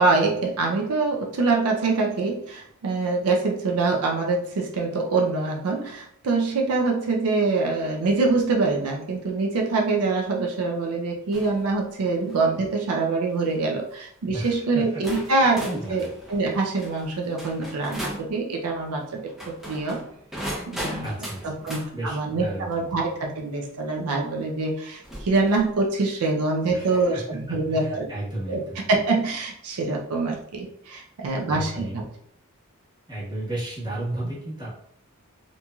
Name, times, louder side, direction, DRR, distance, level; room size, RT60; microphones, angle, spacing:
voice 1, 0.0-16.0 16.3-19.2 19.7-20.0 20.7-21.1 21.4-28.1 28.5-28.6 28.9-32.0, right 3 dB, 80° right, 1 dB, 0.4 m, -24 dB
sound 1, 11.3-11.6 12.1-12.5 13.3-13.6 14.4-14.5 15.0-18.3 19.3-21.9 23.6-23.7 25.0-25.7, equal, ahead, 0.5 m, -37 dB
voice 2, 14.3-15.0 15.6-16.1 21.0-21.6 21.9-23.0 26.7-28.9 31.5-32.0 33.1-34.8, right 1 dB, 20° right, -8 dB, 1.1 m, -33 dB
2.9 x 2.6 x 2.3 m, 0.70 s
head